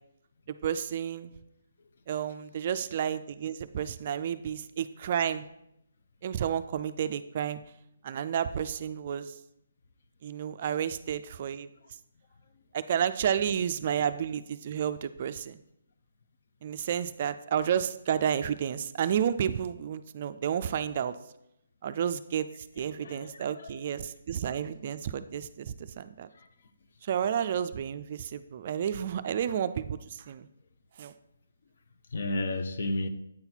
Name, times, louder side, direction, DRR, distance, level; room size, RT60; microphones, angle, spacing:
voice 1, 0.6-1.3 2.1-5.5 6.2-7.6 8.0-9.3 10.2-11.7 12.7-15.6 16.6-21.1 21.8-22.5 22.8-26.3 27.0-30.5 31.0-31.1, right 9 dB, 35° right, 0.3 m, -31 dB
voice 2, 22.8-23.8 26.3-26.5 32.1-33.1, left 2 dB, 55° left, 0.7 m, -33 dB
8.8 x 4.0 x 4.4 m
hypercardioid pair, 165°, 0 cm